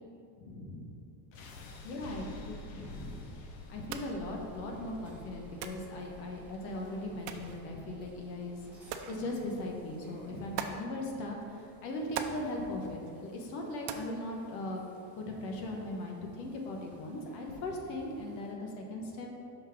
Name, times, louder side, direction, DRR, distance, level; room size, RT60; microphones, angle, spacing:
voice 1, 0.4-0.9 1.8-3.3 3.7-14.8 15.2-19.3, left 1 dB, 80° left, 1 dB, 1.2 m, -39 dB
sound 1, 1.3-13.4, left 2 dB, 60° left, 0.9 m, -51 dB
sound 2, 1.3-18.5, right 1 dB, 5° right, 1.2 m, -60 dB
sound 3, 3.7-15.2, right 7 dB, 75° right, 0.7 m, -46 dB
5.6 x 3.6 x 5.8 m, 2.7 s
supercardioid pair, 125°, 50 cm